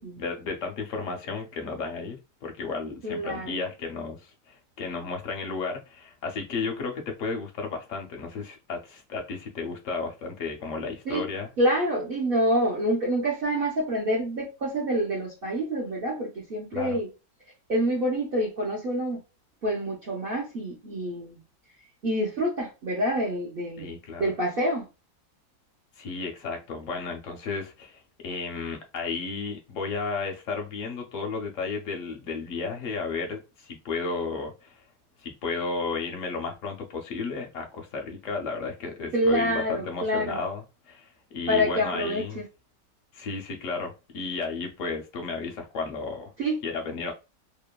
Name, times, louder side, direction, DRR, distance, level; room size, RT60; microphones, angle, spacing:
voice 1, 0.0-11.5 16.7-17.0 23.8-24.3 26.0-34.8 35.2-42.4 43.1-46.3 46.6-47.1, left 4 dB, 65° left, 0.8 m, -33 dB
voice 2, 3.0-3.6 11.1-11.2 11.6-17.1 17.7-19.2 19.6-21.4 22.0-24.9 39.1-40.4 41.5-42.4 46.4-46.6, equal, 50° right, 0.7 m, -27 dB
2.9 x 2.2 x 2.2 m
omnidirectional pair, 1.8 m